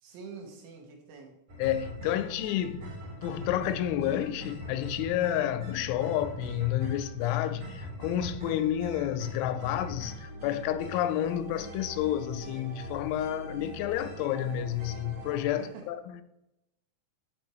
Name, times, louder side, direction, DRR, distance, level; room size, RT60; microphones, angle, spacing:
voice 1, 0.0-1.4 15.6-15.9, right 5 dB, 80° right, 3.6 m, -46 dB
sound 1, 1.5-15.5, equal, 60° right, 1.8 m, -42 dB
voice 2, 1.6-2.9 3.2-16.2, left 11 dB, 85° left, 2.9 m, -30 dB
sound 2, 10.2-15.6, right 1 dB, 5° left, 0.4 m, -53 dB
12.5 x 4.8 x 3.1 m
omnidirectional pair, 5.4 m